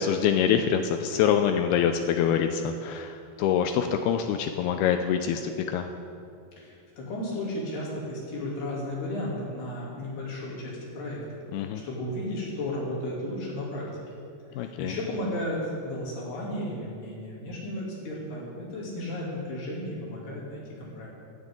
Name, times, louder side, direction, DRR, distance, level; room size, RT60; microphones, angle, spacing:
voice 1, 0.0-5.9 11.5-11.8 14.6-15.0, left 8 dB, 85° left, 7 dB, 2.2 m, -25 dB
voice 2, 6.6-13.9 14.6-21.1, left 1 dB, 65° left, -6 dB, 5.1 m, -34 dB
16.0 x 14.0 x 3.8 m, 2.5 s
omnidirectional pair, 5.1 m